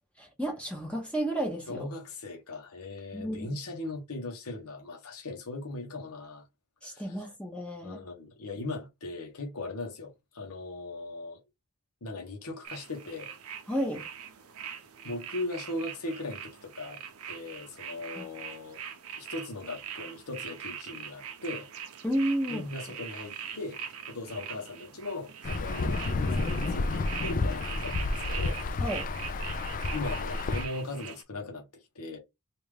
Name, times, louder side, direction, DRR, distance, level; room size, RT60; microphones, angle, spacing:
voice 1, 0.2-1.9 3.1-3.5 6.8-8.0 13.7-14.0 18.2-18.3 22.0-22.7 28.8-29.1, right 1 dB, 5° left, 0.8 m, -32 dB
voice 2, 1.7-6.4 6.8-7.2 7.8-11.4 12.0-13.3 15.0-17.0 17.3-18.8 19.2-21.7 22.5-28.6 29.9-32.2, left 2 dB, 80° left, 1.0 m, -39 dB
sound 1, 12.6-31.2, right 8 dB, 70° right, 0.6 m, -42 dB
Insect / Thunder / Rain, 25.4-30.7, left 3 dB, 35° left, 0.4 m, -30 dB
3.4 x 2.5 x 3.2 m
head